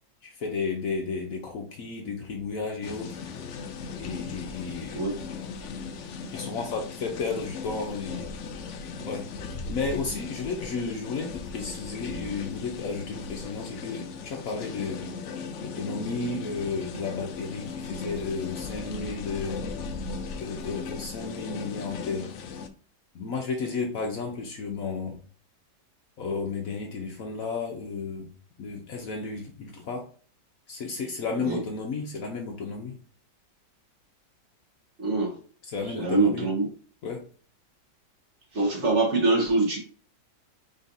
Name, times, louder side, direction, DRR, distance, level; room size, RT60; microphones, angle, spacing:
voice 1, 0.2-3.2 4.0-5.0 6.3-8.3 9.0-9.3 9.7-15.0 15.6-19.6 20.4-22.3 23.1-25.2 26.2-28.3 28.6-30.1 30.7-33.0 35.7-36.5 37.0-37.3, left 4 dB, 60° left, 1.0 m, -33 dB
sound 1, 2.8-22.7, left 5 dB, 80° left, 0.6 m, -37 dB
voice 2, 35.0-35.4 35.9-36.6 38.5-39.8, right 3 dB, 45° right, 1.3 m, -24 dB
4.0 x 3.9 x 2.6 m
omnidirectional pair, 1.9 m